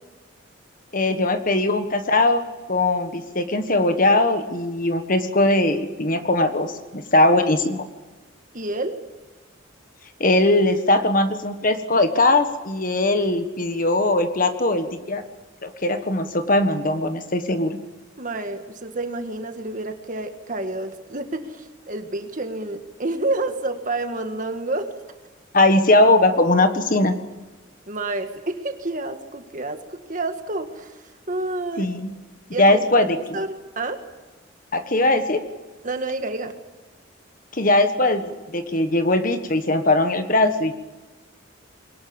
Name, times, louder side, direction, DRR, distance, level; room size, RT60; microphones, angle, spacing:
voice 1, 0.9-7.8 10.2-15.2 15.6-17.8 25.5-27.1 31.8-32.1 32.6-33.2 34.7-35.4 37.5-40.7, left 2 dB, 40° left, 8 dB, 1.5 m, -20 dB
voice 2, 8.5-9.0 18.2-24.9 27.9-30.9 31.3-31.9 32.5-34.0 35.8-36.5, right 2 dB, 40° right, 6 dB, 1.8 m, -29 dB
22.5 x 19.0 x 8.8 m, 1.2 s
head